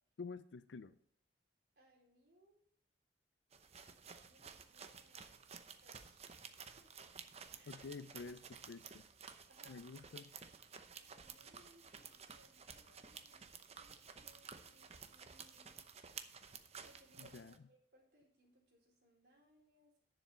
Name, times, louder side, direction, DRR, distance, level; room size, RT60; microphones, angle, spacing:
voice 1, 0.2-1.0 7.7-9.0 9.7-10.3 17.2-17.5, left 4 dB, 90° left, 13 dB, 0.5 m, -49 dB
voice 2, 1.8-2.6 4.2-5.4 5.8-6.2 6.7-6.9 7.5-7.8 9.5-9.8 11.0-15.8 16.8-20.0, right 1 dB, 60° right, -1 dB, 4.1 m, -69 dB
sound 1, 3.5-17.6, right 6 dB, 35° right, 0.8 m, -54 dB
10.5 x 7.1 x 5.5 m, 0.63 s
head